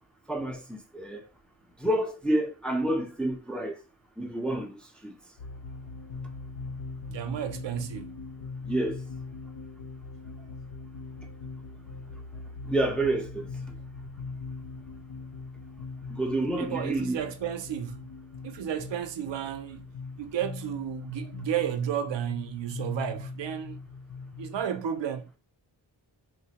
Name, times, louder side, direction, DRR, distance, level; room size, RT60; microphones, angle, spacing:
voice 1, 0.3-1.2 1.8-3.8 4.2-4.7 5.0-5.1 8.7-9.0 12.7-13.4 16.1-17.2, right 1 dB, ahead, 0.4 m, -28 dB
sound 1, 5.4-24.6, left 4 dB, 85° left, 0.6 m, -41 dB
voice 2, 7.1-8.2 16.6-18.1 18.4-19.9 20.2-23.8 24.4-25.3, right 9 dB, 75° right, 0.5 m, -32 dB
4.0 x 2.1 x 2.8 m
wide cardioid pair, 150°, 44 cm